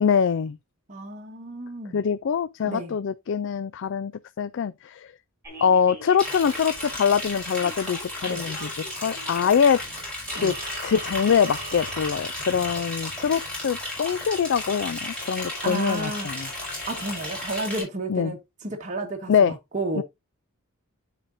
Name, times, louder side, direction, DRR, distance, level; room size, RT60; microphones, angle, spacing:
voice 1, 0.0-0.6 1.9-4.1 4.4-5.1 5.6-8.7 9.0-9.8 10.3-10.5 10.8-16.5 18.1-18.3 19.3-19.5 19.9-20.0, left 7 dB, 60° left, 0.4 m, -23 dB
voice 2, 0.9-2.0 2.6-3.0 8.2-8.4 10.4-10.6 15.6-16.3 16.9-19.3 19.7-20.0, right 2 dB, 35° right, 1.3 m, -32 dB
sound 1, 5.4-17.3, right 1 dB, 15° right, 4.1 m, -43 dB
Liquid, 6.2-17.8, left 1 dB, 5° left, 5.9 m, -34 dB
12.5 x 5.1 x 2.6 m
head